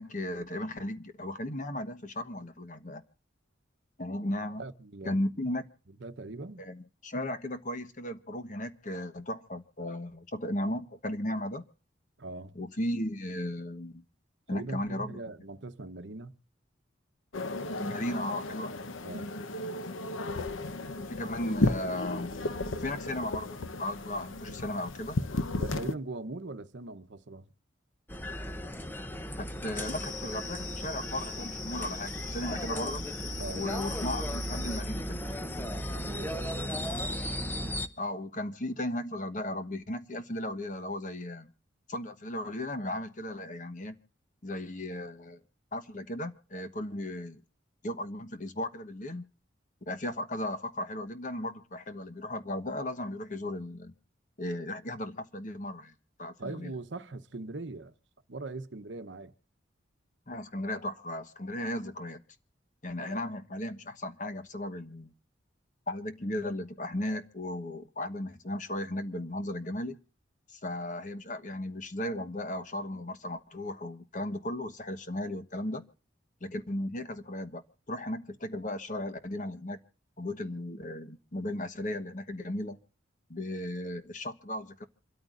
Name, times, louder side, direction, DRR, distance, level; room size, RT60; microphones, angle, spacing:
voice 1, 0.0-3.0 4.0-4.6 5.0-5.7 6.6-11.6 12.5-14.0 14.5-15.2 17.8-18.8 21.0-22.3 22.8-25.2 29.4-33.0 33.5-35.2 38.0-41.5 41.9-44.0 44.4-45.4 45.7-47.4 47.8-49.2 49.9-53.9 54.4-56.7 60.3-62.2 62.8-65.1 65.9-70.0 70.5-75.8 76.4-79.8 80.2-82.8 83.3-84.8, left 1 dB, 40° left, 1.1 m, -36 dB
voice 2, 4.6-5.2 6.0-6.7 12.2-12.6 14.5-16.3 19.0-19.4 25.5-27.5 33.4-33.7 35.9-37.0 56.4-57.9 58.3-59.3 63.1-63.3, right 2 dB, 70° right, 0.9 m, -41 dB
sound 1, 17.3-25.9, left 2 dB, 90° left, 0.9 m, -34 dB
sound 2, 28.1-37.9, equal, 10° left, 0.7 m, -36 dB
sound 3, 29.7-34.8, left 4 dB, 75° left, 2.7 m, -42 dB
27.5 x 13.5 x 2.5 m
head